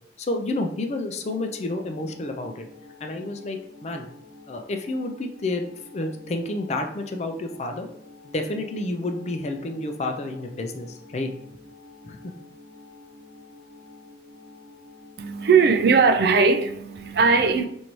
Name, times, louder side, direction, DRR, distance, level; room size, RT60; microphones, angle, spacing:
voice 1, 0.2-2.7 3.0-4.1 4.5-5.6 5.9-7.9 8.2-11.3 12.0-12.3, left 2 dB, 40° left, 5 dB, 0.4 m, -30 dB
sound 1, 1.2-17.1, left 2 dB, 75° right, 0.8 m, -49 dB
voice 2, 15.2-17.7, right 5 dB, 60° right, 7 dB, 0.4 m, -19 dB
4.6 x 2.6 x 3.0 m, 0.75 s
head